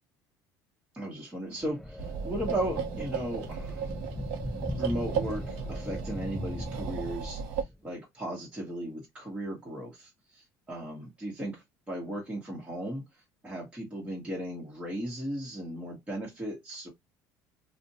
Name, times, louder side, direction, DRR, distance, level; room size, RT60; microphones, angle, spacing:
voice 1, 0.9-3.9 4.7-7.4 7.8-13.0 13.4-16.9, right 1 dB, 15° right, 1.0 m, -36 dB
sound 1, 1.6-7.7, left 1 dB, 5° left, 0.3 m, -38 dB
sound 2, 2.0-7.6, right 7 dB, 90° right, 0.7 m, -35 dB
2.5 x 2.1 x 2.7 m
cardioid pair, 125°, 8 cm